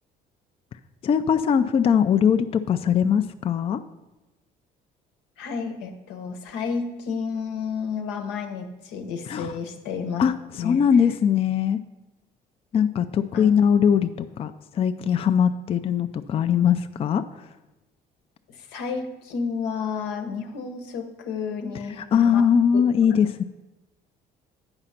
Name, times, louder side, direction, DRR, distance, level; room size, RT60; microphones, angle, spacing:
voice 1, 1.0-3.8 9.3-9.5 10.2-11.8 12.7-17.5 22.1-23.4, left 7 dB, 35° left, 9 dB, 0.4 m, -21 dB
voice 2, 5.4-10.2 10.6-10.8 13.3-13.5 18.5-22.5 22.7-22.8, left 5 dB, 90° left, 5 dB, 1.0 m, -31 dB
8.8 x 5.0 x 5.7 m, 1.0 s
cardioid pair, 110°, 17 cm